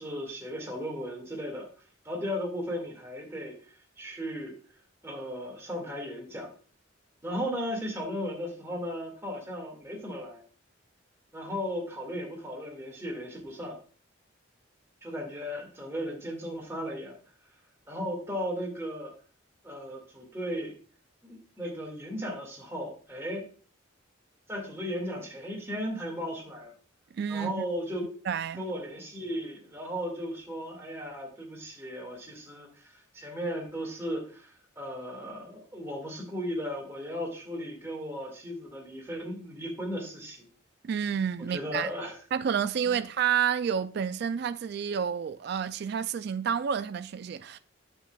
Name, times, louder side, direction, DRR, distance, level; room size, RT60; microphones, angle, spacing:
voice 1, 0.0-1.7 2.0-3.6 4.0-4.5 5.0-6.5 7.2-10.4 11.3-13.8 15.0-17.1 17.9-19.1 19.6-20.7 21.2-23.4 24.5-26.7 27.3-28.1 28.6-40.5 41.5-42.2 42.8-43.0, equal, 15° right, 2.0 m, -36 dB
voice 2, 27.1-27.6 28.3-28.7 40.8-41.9 42.3-47.6, right 7 dB, 55° right, 0.3 m, -29 dB
8.8 x 6.9 x 2.3 m
head